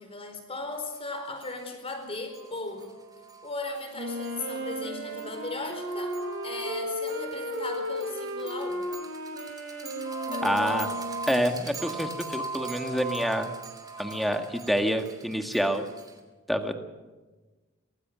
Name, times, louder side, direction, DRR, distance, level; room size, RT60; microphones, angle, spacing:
voice 1, 0.0-3.0 3.4-6.2 6.4-8.8 10.3-11.0, left 2 dB, 25° left, 6 dB, 4.5 m, -37 dB
sound 1, 0.9-1.0 1.4-1.5 1.9-2.0 2.3-16.2, right 3 dB, 20° right, 3.0 m, -40 dB
Wind instrument woodwind instrument, 3.9-11.6, equal, 60° right, 3.9 m, -35 dB
voice 2, 10.4-10.9 11.3-13.5 14.0-15.8 16.5-16.8, equal, ahead, 5 dB, 1.8 m, -27 dB
24.5 x 19.5 x 6.3 m, 1.2 s
head